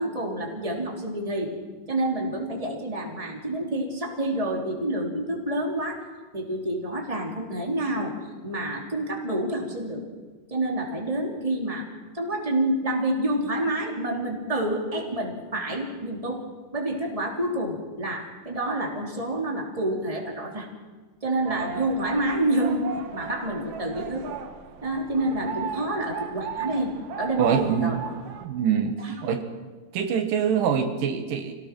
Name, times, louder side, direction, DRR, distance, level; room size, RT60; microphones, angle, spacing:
voice 1, 0.0-1.5 1.9-6.0 6.3-8.1 8.4-10.0 10.5-11.9 12.1-16.4 16.7-20.7 21.2-22.8 23.1-24.3 24.8-26.9 27.2-28.0 29.0-29.3, right 1 dB, 10° right, -1 dB, 3.3 m, -28 dB
sound 1, 21.4-28.5, right 8 dB, 65° right, 2.6 m, -36 dB
voice 2, 27.4-28.1 28.4-29.5 29.9-31.5, right 7 dB, 80° right, 6 dB, 3.1 m, -25 dB
27.5 x 18.0 x 6.2 m, 1.3 s
omnidirectional pair, 3.9 m